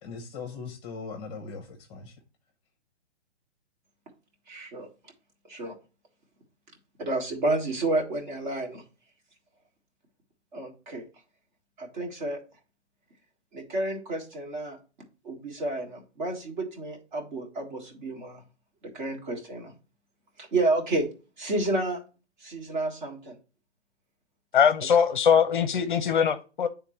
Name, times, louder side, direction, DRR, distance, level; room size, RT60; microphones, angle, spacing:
voice 1, 0.0-2.2, left 4 dB, 15° left, 4 dB, 0.8 m, -39 dB
voice 2, 4.5-4.9 5.4-5.7 7.0-8.8 10.5-11.0 11.8-12.4 13.5-14.8 15.2-18.4 18.8-19.7 20.4-21.1 21.4-22.0 22.4-23.4, right 2 dB, 45° right, 2 dB, 1.7 m, -30 dB
voice 3, 24.5-26.7, left 7 dB, 45° left, 11 dB, 0.6 m, -22 dB
9.6 x 3.6 x 3.0 m, 0.34 s
figure-of-eight pair, 130°, 34 cm